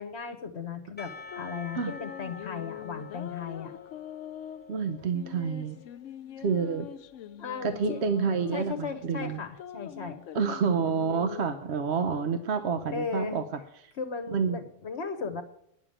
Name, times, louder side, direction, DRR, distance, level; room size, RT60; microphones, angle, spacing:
voice 1, 0.0-3.8 7.4-8.0 8.5-10.2 12.9-13.4 13.9-15.4, left 5 dB, 60° left, 7 dB, 1.3 m, -36 dB
Percussion / Church bell, 1.0-6.0, left 5 dB, 10° left, 0.7 m, -47 dB
sound 1, 1.1-11.5, left 10 dB, 80° left, 1.0 m, -44 dB
voice 2, 4.7-5.8 6.4-6.9 7.6-9.4 10.3-13.4 14.3-14.6, right 5 dB, 60° right, 9 dB, 1.0 m, -28 dB
10.5 x 6.9 x 8.7 m, 0.71 s
omnidirectional pair, 1.3 m